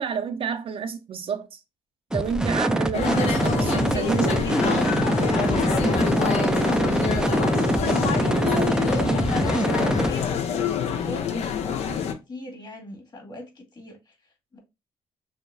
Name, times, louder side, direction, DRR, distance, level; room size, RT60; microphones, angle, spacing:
voice 1, 0.0-1.6 2.1-4.4 8.5-8.7 9.0-9.2, right 6 dB, 50° right, 0.6 m, -29 dB
sound 1, 2.1-10.3, right 1 dB, 5° right, 0.4 m, -24 dB
sound 2, 2.9-12.1, left 8 dB, 65° left, 0.6 m, -27 dB
sound 3, 3.1-8.7, right 5 dB, 90° right, 0.9 m, -33 dB
voice 2, 3.9-7.7 8.5-14.6, equal, 40° left, 2.1 m, -39 dB
6.3 x 2.2 x 2.6 m
hypercardioid pair, 55°, 12 cm